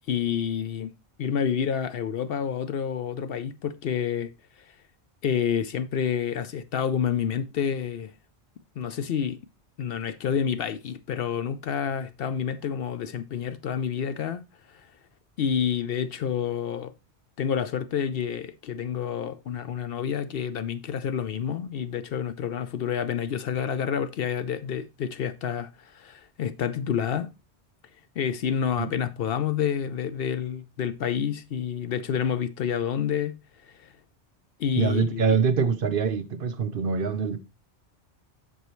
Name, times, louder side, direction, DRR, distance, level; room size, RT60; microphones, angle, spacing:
voice 1, 0.1-0.9 1.2-4.3 5.2-8.1 8.8-9.4 9.8-14.4 14.7-14.9 15.4-16.9 17.4-27.3 28.2-33.4 33.6-33.7 34.6-35.4, left 8 dB, 65° left, 0.7 m, -28 dB
voice 2, 34.8-37.4, right 6 dB, 55° right, 0.8 m, -24 dB
8.2 x 6.3 x 3.0 m
omnidirectional pair, 1.1 m